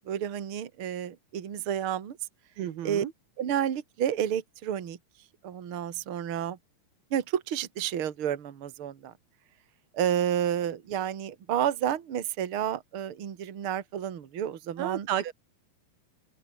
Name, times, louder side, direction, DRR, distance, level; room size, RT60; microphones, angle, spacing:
voice 1, 0.1-2.2 2.8-3.0 3.4-5.0 5.4-6.6 7.1-9.1 9.9-15.1, right 10 dB, 45° right, 2.3 m, -30 dB
voice 2, 2.6-3.1 14.8-15.3, right 11 dB, 85° right, 3.6 m, -31 dB
omnidirectional pair, 4.2 m